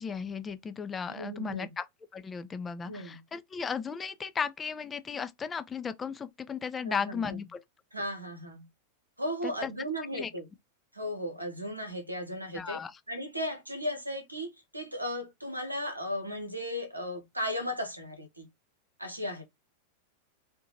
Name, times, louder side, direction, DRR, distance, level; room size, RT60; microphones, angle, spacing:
voice 1, 0.0-1.8 2.1-7.6 9.4-9.7 10.1-10.3 12.5-13.0, left 6 dB, 20° left, 0.3 m, -35 dB
voice 2, 1.1-1.7 2.8-3.2 6.8-7.4 7.9-8.7 9.2-10.5 10.9-12.8 13.1-18.5 19.0-19.4, equal, 85° right, 0.8 m, -36 dB
2.6 x 2.1 x 2.7 m
figure-of-eight pair, 90°, 0 cm